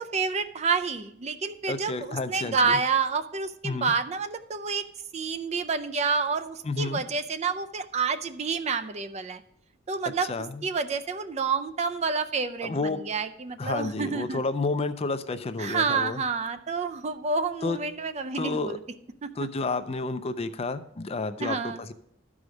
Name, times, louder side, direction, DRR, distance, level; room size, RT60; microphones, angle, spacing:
voice 1, 0.0-4.9 5.1-9.4 9.9-10.3 10.6-14.4 15.6-18.8 19.2-19.5 21.4-21.8, right 5 dB, 35° right, 9 dB, 0.4 m, -29 dB
voice 2, 1.7-2.8 3.6-3.9 6.7-7.0 10.3-10.6 12.6-13.0 13.6-16.2 17.6-17.8 18.3-18.8 19.4-21.9, left 3 dB, 30° left, 10 dB, 0.4 m, -30 dB
13.0 x 4.9 x 5.1 m, 0.75 s
head